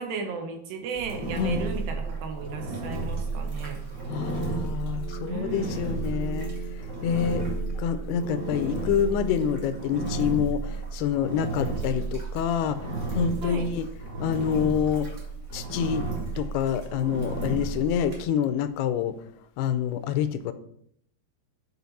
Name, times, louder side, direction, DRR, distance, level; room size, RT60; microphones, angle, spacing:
voice 1, 0.0-3.8 5.3-6.0 13.4-13.7, right 5 dB, 70° right, 4 dB, 2.7 m, -35 dB
Engine, 0.9-18.2, right 3 dB, 35° right, 1.1 m, -33 dB
voice 2, 4.1-6.5 7.0-7.4 7.8-12.8 13.1-13.9 14.2-15.1 15.5-16.1 16.4-19.2 19.6-20.5, left 8 dB, 90° left, 12 dB, 2.6 m, -27 dB
sound 1, 4.1-9.8, right 2 dB, 90° right, 1.5 m, -39 dB
9.7 x 4.3 x 4.1 m, 0.69 s
omnidirectional pair, 4.5 m